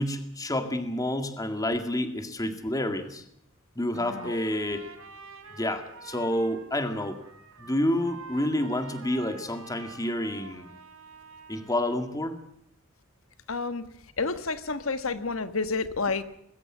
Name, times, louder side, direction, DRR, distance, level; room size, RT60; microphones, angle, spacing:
voice 1, 0.0-3.2 3.8-4.9 5.6-7.2 7.6-10.7 11.5-12.4, left 1 dB, 15° left, 8 dB, 2.1 m, -29 dB
voice 2, 3.9-4.4 13.5-13.9 14.2-16.2, left 4 dB, 70° left, 12 dB, 1.4 m, -30 dB
Trumpet, 3.9-12.0, right 3 dB, 75° right, 3.4 m, -47 dB
21.5 x 16.5 x 7.3 m, 0.73 s
head